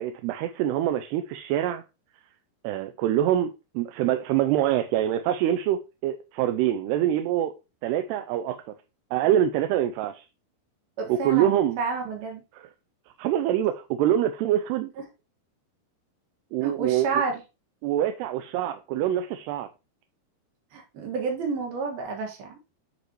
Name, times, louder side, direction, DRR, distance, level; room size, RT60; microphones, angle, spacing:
voice 1, 0.0-1.8 2.6-7.5 7.8-8.6 9.1-10.3 11.1-11.8 12.5-12.7 13.2-14.9 16.5-17.2 17.8-19.7, right 11 dB, 80° right, 2.6 m, -25 dB
voice 2, 11.0-12.4 16.6-17.4 20.7-22.6, right 5 dB, 65° right, 3.6 m, -30 dB
10.5 x 5.2 x 3.1 m
omnidirectional pair, 5.0 m